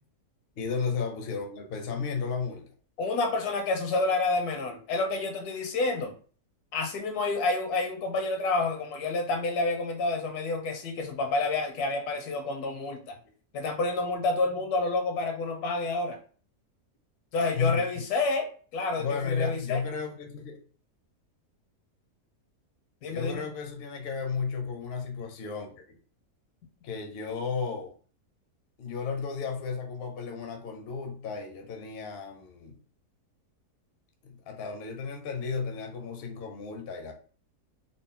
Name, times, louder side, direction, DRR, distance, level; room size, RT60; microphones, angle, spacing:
voice 1, 0.6-2.6 17.5-18.0 19.0-20.6 23.1-26.0 26.8-27.9 28.8-32.8 34.2-37.1, left 5 dB, 50° left, 3 dB, 0.7 m, -33 dB
voice 2, 3.0-6.1 6.7-13.2 13.5-16.2 17.3-19.8 23.0-23.5, left 3 dB, 75° left, 5 dB, 1.2 m, -29 dB
3.8 x 2.1 x 3.7 m, 0.41 s
omnidirectional pair, 1.7 m